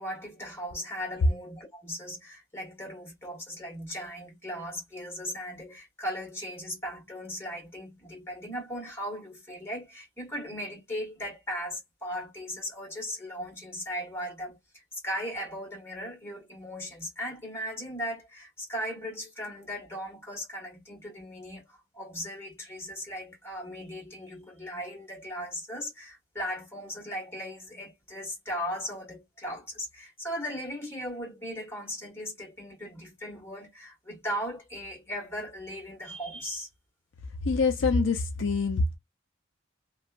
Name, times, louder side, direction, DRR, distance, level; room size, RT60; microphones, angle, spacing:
voice 1, 0.0-36.7, equal, 15° left, 1.5 m, -37 dB
voice 2, 37.4-39.0, left 4 dB, 65° left, 0.4 m, -25 dB
2.7 x 2.3 x 2.4 m
head